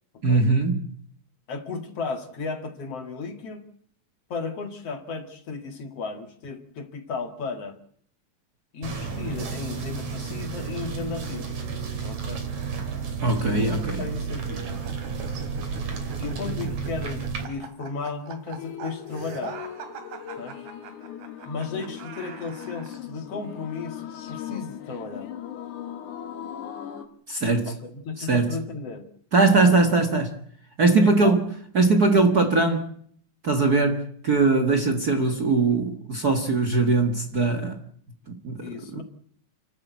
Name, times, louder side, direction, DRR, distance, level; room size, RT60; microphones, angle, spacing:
voice 1, 0.2-0.8 13.2-14.0 27.3-27.7 28.2-28.6 29.3-30.4 30.8-31.4 31.7-32.9 33.4-37.8 38.3-39.0, right 3 dB, 40° right, 1.7 m, -21 dB
voice 2, 1.5-3.6 4.3-7.8 8.7-11.5 12.0-12.4 13.5-14.7 16.2-19.6 20.4-20.7 21.5-25.3 27.6-29.1 29.7-29.8 31.0-31.4 38.6-39.0, left 4 dB, 55° left, 3.0 m, -34 dB
sound 1, 8.8-17.5, right 5 dB, 65° right, 4.3 m, -32 dB
sound 2, 14.5-23.0, right 6 dB, 85° right, 3.8 m, -42 dB
sound 3, 18.6-27.1, left 10 dB, 90° left, 3.1 m, -39 dB
29.5 x 12.5 x 8.2 m
omnidirectional pair, 3.4 m